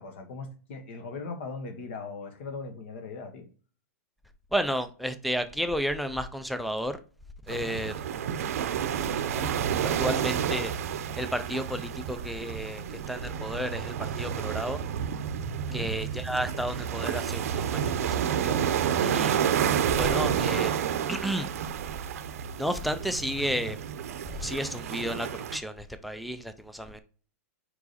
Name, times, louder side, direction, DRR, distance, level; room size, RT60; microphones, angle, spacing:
voice 1, 0.0-3.5 7.5-7.8 15.7-15.9, left 4 dB, 50° left, 1.5 m, -39 dB
voice 2, 4.5-7.0 7.5-8.0 9.3-9.5 9.8-10.7 11.1-14.8 15.7-19.5 19.9-21.5 22.6-23.8 24.4-27.0, equal, ahead, 0.3 m, -32 dB
sound 1, 7.5-25.6, right 8 dB, 60° right, 0.6 m, -30 dB
4.9 x 4.8 x 4.1 m
supercardioid pair, 170°, 9 cm